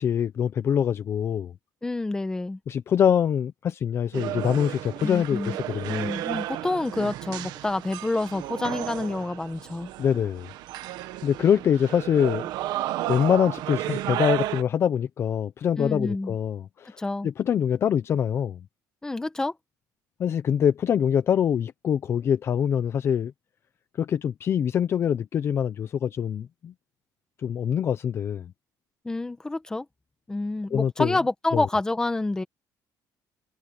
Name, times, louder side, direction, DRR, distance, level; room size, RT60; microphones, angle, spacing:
voice 1, 0.0-1.5 2.7-6.1 10.0-10.5 11.2-12.5 13.1-18.6 20.2-23.3 24.0-26.7 27.4-28.5 30.7-31.2 31.5-31.6, left 8 dB, 35° left, 0.7 m, -24 dB
voice 2, 1.8-2.6 5.0-5.6 5.9-9.9 15.8-16.3 17.0-17.3 19.0-19.5 29.0-29.8 30.3-32.4, left 2 dB, 10° left, 1.5 m, -28 dB
sound 1, 4.1-14.6, right 14 dB, 75° right, 1.5 m, -33 dB
cardioid pair, 165°, 7 cm